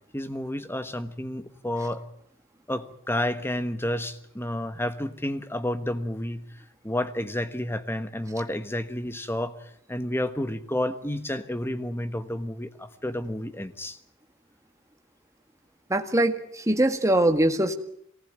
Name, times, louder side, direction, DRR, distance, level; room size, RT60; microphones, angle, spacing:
voice 1, 0.1-2.0 2.7-6.4 6.8-9.5 9.9-14.0, left 1 dB, 10° left, 11 dB, 1.2 m, -30 dB
voice 2, 15.9-17.7, right 1 dB, 15° right, 6 dB, 1.7 m, -22 dB
23.0 x 18.5 x 9.2 m, 0.69 s
head